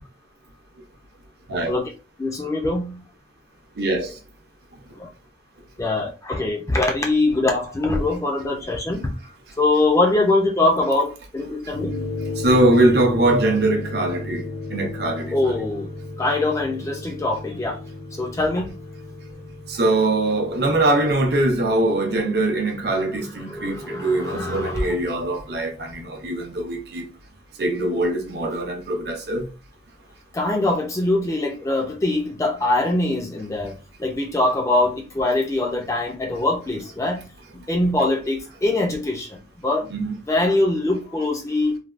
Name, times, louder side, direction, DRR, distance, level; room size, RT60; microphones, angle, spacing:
voice 1, 2.2-3.0 5.0-5.1 5.8-9.1 9.6-12.0 15.3-15.9 16.2-17.8 18.2-18.8 23.1-25.0 30.3-39.9 40.3-41.8, left 2 dB, 15° left, 0.4 m, -23 dB
voice 2, 3.8-4.1 12.4-14.4 14.7-15.4 19.7-27.1 27.6-29.5 39.9-40.2, right 2 dB, 55° right, 0.7 m, -22 dB
sound 1, 11.7-26.3, left 2 dB, 60° left, 0.6 m, -35 dB
3.3 x 2.2 x 2.4 m
head